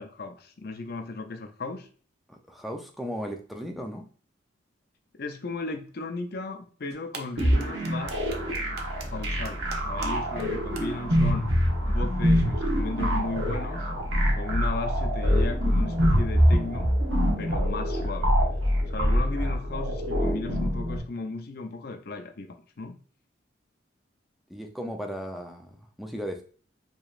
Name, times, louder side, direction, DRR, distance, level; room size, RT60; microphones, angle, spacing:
voice 1, 0.0-1.9 5.2-8.8 9.1-11.5 11.8-13.9 14.3-16.9 17.4-18.3 18.9-23.0, left 3 dB, 50° left, 6 dB, 0.5 m, -36 dB
voice 2, 2.3-4.1 24.5-26.4, equal, ahead, 3 dB, 0.5 m, -36 dB
sound 1, 6.9-10.1 10.4-10.5 10.8-10.9, right 5 dB, 50° right, 0.6 m, -40 dB
sound 2, 7.4-21.0, equal, 85° right, 1.2 m, -25 dB
4.9 x 3.1 x 2.4 m, 0.42 s
head